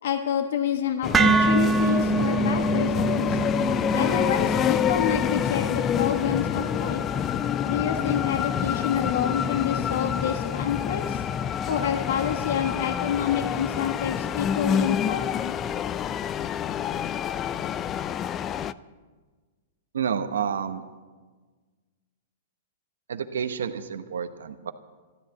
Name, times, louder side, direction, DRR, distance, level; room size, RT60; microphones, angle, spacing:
voice 1, 0.0-3.4 3.9-7.0 7.6-11.3 11.7-15.5, left 8 dB, 65° left, 6 dB, 1.2 m, -28 dB
sound 1, 1.0-18.7, left 9 dB, 25° left, 0.5 m, -27 dB
sound 2, 1.1-9.2, right 3 dB, 15° right, 1.2 m, -27 dB
voice 2, 19.9-20.8 23.1-24.7, right 7 dB, 80° right, 8 dB, 1.0 m, -29 dB
13.0 x 13.0 x 8.1 m, 1.4 s
hypercardioid pair, 115°, 0 cm